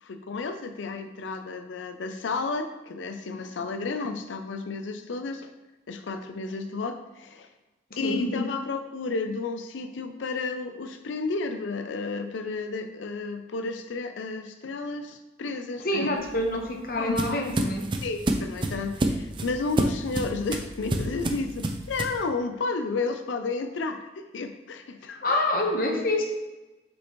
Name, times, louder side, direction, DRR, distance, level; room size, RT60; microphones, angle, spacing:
voice 1, 0.0-5.5 5.9-7.5 8.0-16.2 17.0-17.7 18.0-25.2, left 3 dB, 90° left, 8 dB, 0.5 m, -32 dB
voice 2, 15.8-17.8 25.2-26.2, left 1 dB, 50° left, 2 dB, 1.1 m, -27 dB
sound 1, 16.2-22.2, right 1 dB, 25° right, 0.4 m, -29 dB
6.6 x 5.2 x 3.1 m, 1.1 s
head